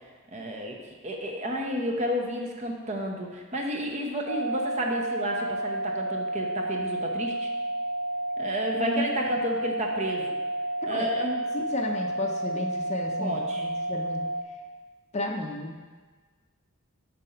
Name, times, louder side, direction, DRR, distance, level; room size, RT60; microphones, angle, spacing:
voice 1, 0.3-0.8 1.0-7.5 8.4-10.4 10.8-11.6 13.2-13.7, equal, 30° right, 1 dB, 0.7 m, -31 dB
sound 1, 4.3-14.4, right 1 dB, 55° right, 1.7 m, -31 dB
voice 2, 8.7-9.1 10.8-11.2 11.5-14.2 15.1-15.7, left 2 dB, 30° left, 2 dB, 0.5 m, -33 dB
5.2 x 4.1 x 5.6 m, 1.4 s
head